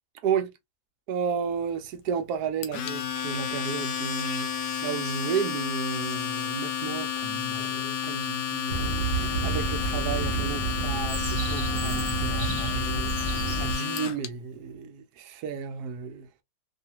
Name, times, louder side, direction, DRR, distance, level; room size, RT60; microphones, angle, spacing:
voice 1, 1.1-16.3, right 6 dB, 70° right, 1.0 m, -33 dB
Domestic sounds home sounds, 2.6-14.3, left 8 dB, 70° left, 1.2 m, -31 dB
sound 1, 8.7-13.7, right 4 dB, 35° right, 1.1 m, -30 dB
3.0 x 2.5 x 2.7 m
omnidirectional pair, 2.1 m